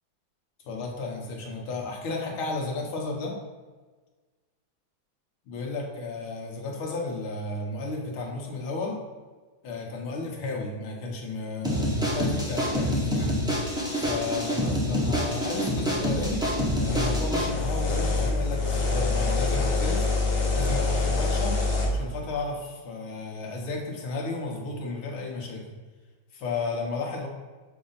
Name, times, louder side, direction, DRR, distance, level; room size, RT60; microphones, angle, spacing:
voice 1, 0.6-3.4 5.5-9.0 9.6-13.4 14.0-16.5 16.9-20.1 20.5-21.6 21.9-25.6 26.3-27.3, left 3 dB, 85° left, -1 dB, 2.0 m, -33 dB
sound 1, 11.6-17.5, equal, 5° right, 0.6 m, -27 dB
sound 2, 16.1-21.9, left 3 dB, 70° left, 1.9 m, -26 dB
7.4 x 2.6 x 5.5 m, 1.3 s
omnidirectional pair, 2.2 m